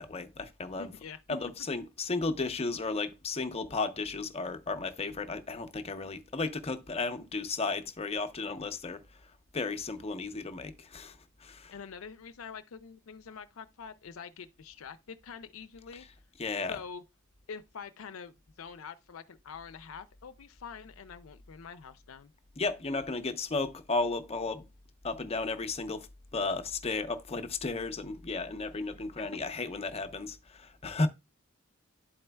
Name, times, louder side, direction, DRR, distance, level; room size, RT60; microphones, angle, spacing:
voice 1, 0.0-0.9 1.3-9.0 9.5-11.7 16.4-16.8 22.6-24.7 25.0-26.1 26.3-31.1, left 3 dB, 30° left, 0.7 m, -34 dB
voice 2, 0.8-1.4 11.7-16.0 16.7-17.0 17.5-22.3 28.9-29.3, left 6 dB, 80° left, 0.5 m, -46 dB
11.5 x 4.3 x 2.2 m
head